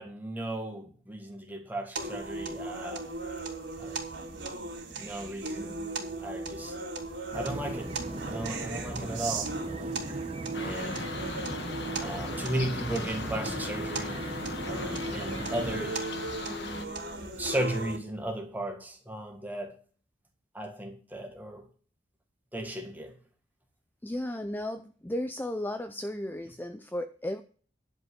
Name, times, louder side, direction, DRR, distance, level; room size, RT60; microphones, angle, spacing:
voice 1, 0.0-3.1 3.8-4.0 5.0-5.8 6.2-6.8 7.3-7.9 8.2-10.0 10.6-11.1 12.0-14.3 14.6-16.6 17.4-19.7 20.5-21.7 22.5-23.1, right 1 dB, 10° right, 1.9 m, -36 dB
sound 1, 2.0-18.0, right 2 dB, 70° right, 3.4 m, -37 dB
sound 2, 7.3-15.9, right 1 dB, 30° right, 1.0 m, -39 dB
sound 3, 10.5-16.9, left 3 dB, 60° left, 1.5 m, -39 dB
voice 2, 24.0-27.4, left 1 dB, 10° left, 0.5 m, -34 dB
11.0 x 5.3 x 8.0 m
head